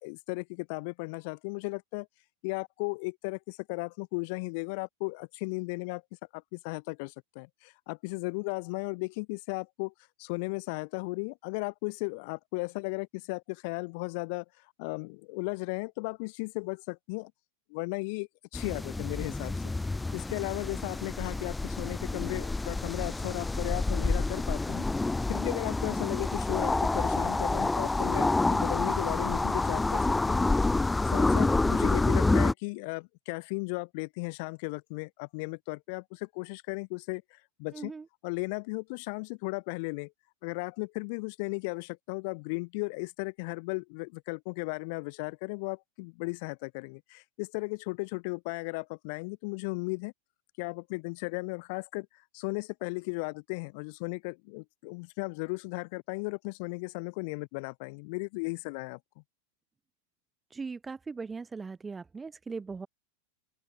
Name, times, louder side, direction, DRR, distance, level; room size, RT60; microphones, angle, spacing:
voice 1, 0.0-2.1 2.4-6.0 6.3-9.9 10.2-17.3 17.7-19.7 20.1-24.9 25.3-30.5 31.0-37.9 38.2-40.1 40.4-50.1 50.6-59.0, left 31 dB, 45° left, 2.3 m, -36 dB
sound 1, 18.5-32.5, left 2 dB, 10° left, 0.8 m, -28 dB
voice 2, 37.7-38.1 60.5-62.9, right 4 dB, 15° right, 3.4 m, -39 dB
open air
figure-of-eight pair, 90°, 0 cm